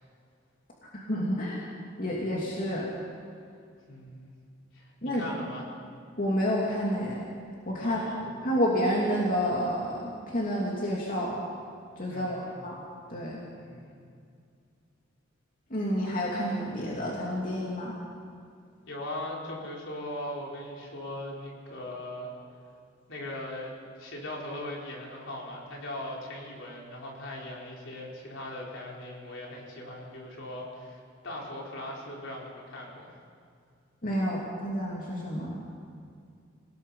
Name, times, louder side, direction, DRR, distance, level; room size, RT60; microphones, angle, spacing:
voice 1, 0.9-1.6 2.0-2.9 5.0-5.3 6.2-7.2 7.7-8.1 8.4-11.4 12.0-12.8 13.1-13.4 15.7-18.0 34.0-35.6, equal, 45° left, -4 dB, 3.0 m, -29 dB
voice 2, 3.9-4.3 4.7-5.7 7.8-8.3 12.1-12.6 13.6-14.0 18.9-22.3 23.1-33.1, left 1 dB, 70° left, -2 dB, 4.8 m, -39 dB
29.0 x 18.5 x 5.7 m, 2.3 s
head